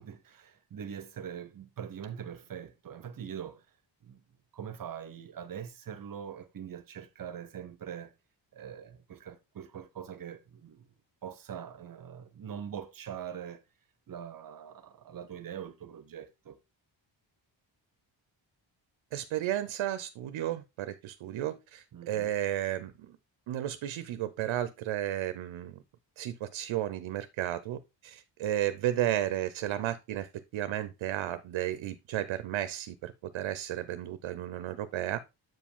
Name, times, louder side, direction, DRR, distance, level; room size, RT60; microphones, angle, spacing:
voice 1, 0.0-3.6 4.0-4.2 4.5-8.1 8.5-10.9 11.2-13.6 14.1-16.6 21.9-22.3, right 8 dB, 45° right, 0.8 m, -43 dB
voice 2, 19.1-23.1 23.5-25.8 26.2-30.3 30.5-35.2, right 12 dB, 90° right, 0.7 m, -33 dB
7.6 x 5.0 x 3.6 m
wide cardioid pair, 140°, 45 cm